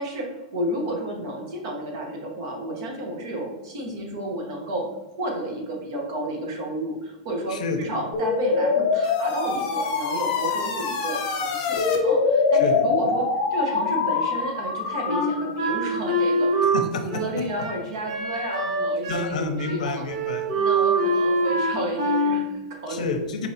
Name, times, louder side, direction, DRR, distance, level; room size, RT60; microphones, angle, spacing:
voice 1, 0.0-4.9 5.2-16.7 17.0-20.0 20.5-23.0, right 1 dB, 50° right, 0 dB, 1.1 m, -31 dB
sound 1, 8.1-15.6, left 4 dB, 35° left, 0.7 m, -24 dB
Wind instrument woodwind instrument, 15.1-19.3 19.6-19.8 20.0-22.4, right 2 dB, 70° right, 1.4 m, -24 dB
voice 2, 16.7-17.1 19.1-20.4 22.9-23.5, left 3 dB, 85° left, 5 dB, 0.7 m, -28 dB
4.4 x 3.2 x 2.8 m, 1.1 s
supercardioid pair, 170°, 4 cm